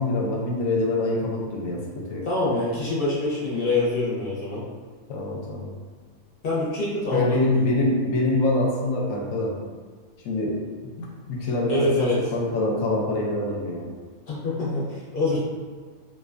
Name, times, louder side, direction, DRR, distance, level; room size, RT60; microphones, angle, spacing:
voice 1, 0.0-2.3 5.1-5.7 7.1-9.6 10.2-13.9, left 2 dB, 70° left, -2 dB, 0.9 m, -25 dB
voice 2, 2.3-4.6 6.4-7.4 11.7-12.2 14.3-15.4, left 2 dB, 50° left, -7 dB, 0.6 m, -25 dB
2.7 x 2.2 x 2.4 m, 1.5 s
omnidirectional pair, 1.6 m